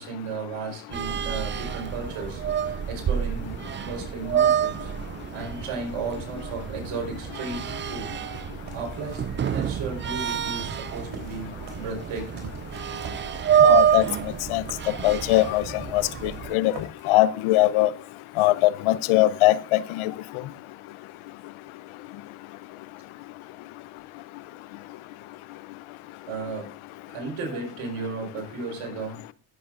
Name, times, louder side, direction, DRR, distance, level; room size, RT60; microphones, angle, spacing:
voice 1, 0.0-4.9 5.3-7.6 7.9-8.1 8.7-12.6 13.6-13.9 26.3-26.7 27.1-29.2, right 4 dB, 80° right, 4.3 m, -35 dB
sound 1, 0.9-16.6, right 9 dB, 25° right, 0.3 m, -27 dB
sound 2, 8.6-17.1, right 4 dB, 55° right, 3.5 m, -46 dB
voice 2, 13.6-14.0 14.5-14.6 15.0-15.6 15.9-16.7 17.1-17.9 18.4-20.1, left 16 dB, 75° left, 0.8 m, -21 dB
17.0 x 7.7 x 2.5 m
supercardioid pair, 65°, 50 cm